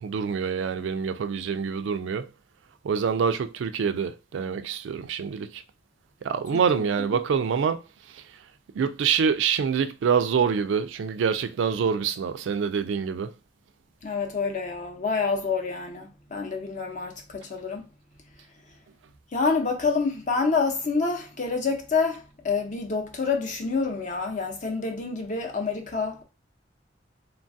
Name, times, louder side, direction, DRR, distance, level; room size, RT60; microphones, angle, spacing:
voice 1, 0.0-2.3 2.8-5.6 6.2-7.8 8.8-13.3, right 6 dB, 90° right, 0.3 m, -26 dB
voice 2, 6.5-6.9 14.0-17.8 19.3-26.2, left 4 dB, 45° left, 0.6 m, -27 dB
3.1 x 2.2 x 2.6 m
head